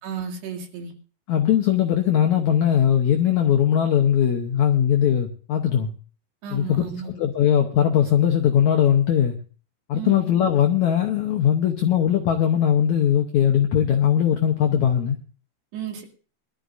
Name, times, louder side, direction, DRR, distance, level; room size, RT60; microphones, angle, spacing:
voice 1, 0.0-0.9 6.4-7.1 9.9-10.2 15.7-16.1, right 6 dB, 85° right, 4.5 m, -33 dB
voice 2, 1.3-5.9 6.5-9.4 9.9-15.2, left 9 dB, 80° left, 1.7 m, -20 dB
23.0 x 12.5 x 2.6 m
omnidirectional pair, 4.7 m